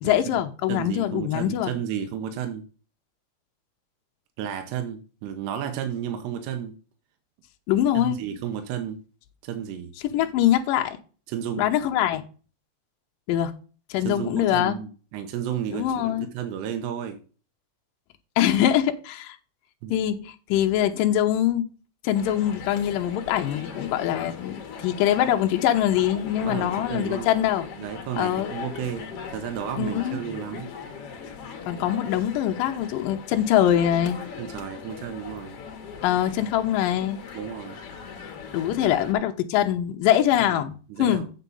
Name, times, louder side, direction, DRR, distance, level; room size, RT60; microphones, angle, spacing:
voice 1, 0.0-1.7 7.7-8.2 10.0-11.0 11.6-12.2 13.3-13.5 13.9-14.8 15.7-16.3 18.4-19.4 19.9-21.7 22.0-27.7 28.2-28.5 29.8-30.2 31.7-34.2 36.0-37.2 38.5-40.7 41.0-41.3, left 11 dB, 80° left, 2.0 m, -23 dB
voice 2, 0.7-2.6 4.4-6.8 7.9-9.0 9.4-9.9 11.3-11.7 14.0-17.2 19.8-19.9 26.4-27.3 27.8-30.7 34.4-35.6 37.3-37.8 38.9-39.0 40.5-40.6 40.9-41.3, right 9 dB, 80° right, 2.9 m, -32 dB
sound 1, 22.1-39.1, left 6 dB, 65° left, 1.5 m, -39 dB
8.4 x 5.9 x 5.3 m
omnidirectional pair, 5.0 m